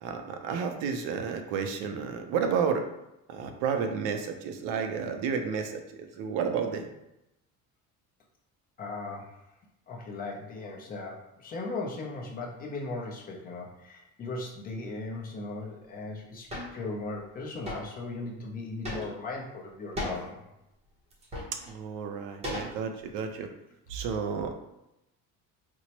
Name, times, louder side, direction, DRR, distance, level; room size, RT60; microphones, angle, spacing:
voice 1, 0.0-2.8 3.3-6.9 21.7-23.5 23.9-24.5, right 6 dB, 80° right, 5 dB, 0.6 m, -31 dB
voice 2, 8.8-9.3 9.9-20.4, left 3 dB, 30° left, -2 dB, 0.6 m, -38 dB
sound 1, 16.5-16.8 17.6-17.9 18.8-19.3 19.9-20.3 21.1-21.7 22.4-23.1, left 1 dB, 20° right, 0.7 m, -36 dB
4.3 x 2.1 x 2.9 m, 0.88 s
cardioid pair, 155°, 31 cm